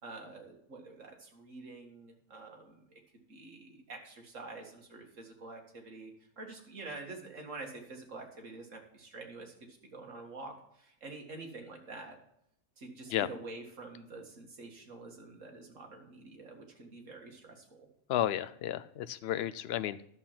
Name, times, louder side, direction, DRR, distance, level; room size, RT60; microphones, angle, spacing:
voice 1, 0.0-3.0 3.3-12.2 12.8-17.9, right 3 dB, 60° right, 2 dB, 2.2 m, -47 dB
voice 2, 18.1-20.1, left 12 dB, 65° left, 15 dB, 0.6 m, -32 dB
11.0 x 6.9 x 5.7 m, 0.74 s
omnidirectional pair, 1.5 m